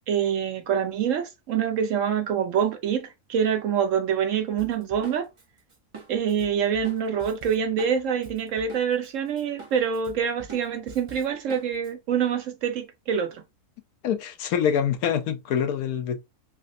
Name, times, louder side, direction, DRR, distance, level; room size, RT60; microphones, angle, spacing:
voice 1, 0.1-5.3 6.1-13.4, right 8 dB, 65° right, 0.9 m, -26 dB
Drum kit, 4.6-9.1 9.4-11.9, right 3 dB, 35° right, 0.5 m, -45 dB
voice 2, 14.0-16.2, left 8 dB, 80° left, 1.1 m, -25 dB
3.4 x 3.0 x 2.6 m
omnidirectional pair, 1.6 m